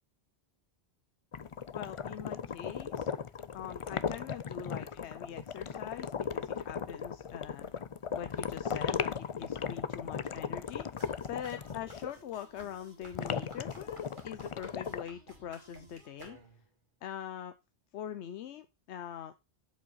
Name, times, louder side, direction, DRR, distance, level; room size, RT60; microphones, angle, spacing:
sound 1, 1.3-12.1 13.1-15.0, left 7 dB, 50° left, 0.4 m, -37 dB
voice 1, 1.7-3.1 3.5-7.7 8.1-16.4 17.0-17.5 17.9-19.3, left 10 dB, 85° left, 11 dB, 0.9 m, -43 dB
sound 2, 11.0-16.8, right 2 dB, 50° right, 2.2 m, -55 dB
7.2 x 5.2 x 5.4 m, 0.26 s
omnidirectional pair, 1.1 m